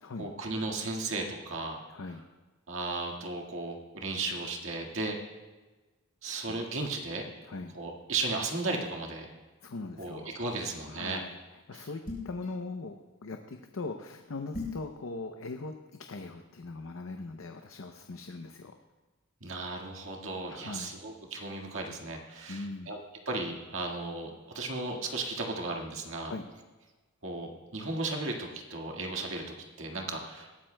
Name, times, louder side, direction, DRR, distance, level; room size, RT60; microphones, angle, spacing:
voice 1, 0.2-1.8 2.7-5.2 6.2-7.3 7.7-9.3 10.0-11.2 11.7-11.9 19.4-26.3 27.2-30.5, right 3 dB, 70° right, 1 dB, 1.7 m, -35 dB
voice 2, 1.9-2.3 6.5-6.6 7.4-7.7 9.6-10.4 10.8-11.3 11.7-18.7 20.5-20.9 22.5-22.9 26.3-26.5, left 3 dB, 80° left, 5 dB, 0.6 m, -40 dB
sound 1, 12.1-12.5 14.5-14.9, left 3 dB, 40° left, 4.0 m, -37 dB
20.0 x 13.0 x 2.2 m, 1.2 s
head